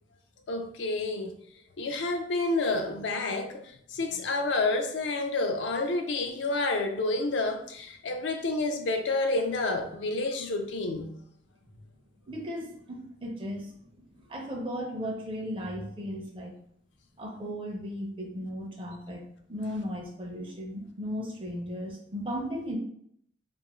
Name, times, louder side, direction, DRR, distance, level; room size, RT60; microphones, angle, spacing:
voice 1, 0.5-1.4 1.8-3.6 3.9-11.1, left 2 dB, 80° left, 0.4 m, -29 dB
voice 2, 12.3-13.7 14.3-16.5 17.2-19.2 19.5-22.8, equal, 30° right, 0.5 m, -36 dB
2.4 x 2.3 x 2.9 m
head